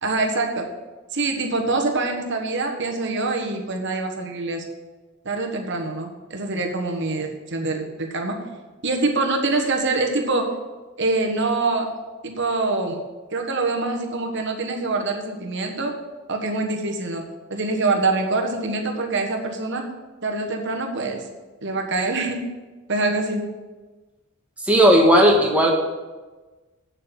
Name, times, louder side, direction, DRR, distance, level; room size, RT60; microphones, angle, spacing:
voice 1, 0.0-0.7 1.1-4.6 5.2-8.4 8.8-10.5 11.0-11.9 12.2-13.0 13.3-16.0 16.3-17.2 17.5-19.9 20.2-21.2 21.6-22.4 22.9-23.5, right 3 dB, 55° right, 2 dB, 1.4 m, -25 dB
voice 2, 24.6-25.7, equal, 5° right, -1 dB, 1.6 m, -15 dB
8.5 x 6.7 x 7.4 m, 1.2 s
head